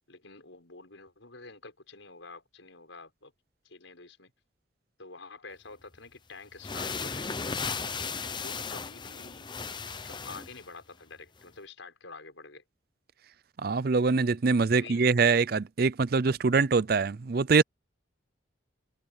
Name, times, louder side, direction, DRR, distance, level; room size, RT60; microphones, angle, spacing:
voice 1, 0.1-3.3 3.6-4.3 5.0-7.7 8.4-9.5 10.0-12.6 14.7-15.2, left 3 dB, 85° left, 6.0 m, -48 dB
sound 1, 5.9-6.0 6.5-10.7, left 5 dB, 25° left, 0.8 m, -36 dB
voice 2, 13.6-17.6, right 4 dB, 50° right, 0.5 m, -24 dB
head